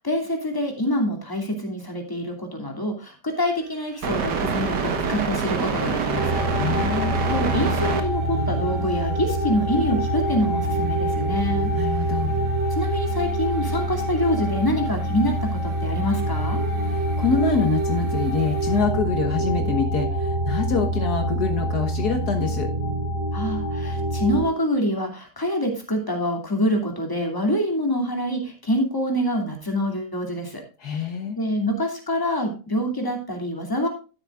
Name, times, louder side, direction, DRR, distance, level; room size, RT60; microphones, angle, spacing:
voice 1, 0.0-7.0 7.3-12.0 12.8-16.6 23.3-31.1 31.4-33.9, equal, 10° left, 3 dB, 2.6 m, -26 dB
sound 1, 4.0-8.0 8.4-9.3 9.6-9.7 9.9-11.8 12.2-18.8, right 5 dB, 75° right, 2.1 m, -29 dB
sound 2, 6.1-24.5, right 1 dB, 35° right, 2.8 m, -25 dB
voice 2, 6.6-7.1 11.8-12.4 16.8-22.7 30.8-31.4, left 5 dB, 65° left, 4 dB, 1.8 m, -25 dB
12.0 x 11.0 x 2.5 m, 0.35 s
omnidirectional pair, 1.8 m